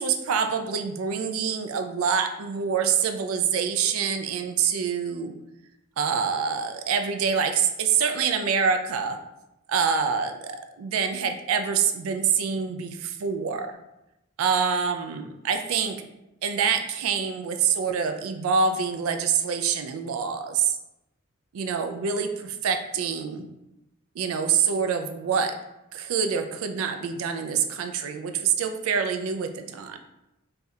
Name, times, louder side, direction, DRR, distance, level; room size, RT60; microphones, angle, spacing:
voice 1, 0.0-5.3 6.0-9.2 9.7-13.7 14.4-16.0 16.4-20.8 21.5-23.5 24.2-25.5 25.9-30.0, right 6 dB, 75° right, 7 dB, 0.3 m, -26 dB
3.1 x 2.4 x 2.7 m, 0.91 s
head